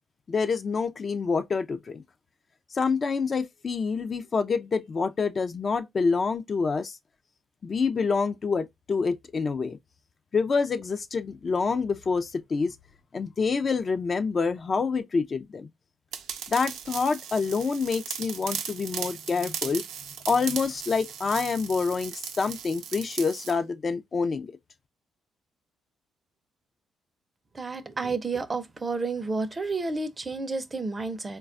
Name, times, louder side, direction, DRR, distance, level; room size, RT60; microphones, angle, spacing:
voice 1, 0.3-2.0 2.7-7.0 7.6-9.8 10.3-12.8 13.1-15.7 16.5-19.8 20.3-24.5, left 5 dB, 40° left, 0.4 m, -27 dB
sound 1, 16.1-23.5, right 8 dB, 85° right, 0.5 m, -37 dB
voice 2, 27.5-31.4, right 3 dB, 25° right, 0.5 m, -31 dB
3.9 x 2.2 x 2.5 m
cardioid pair, 90°, 0 cm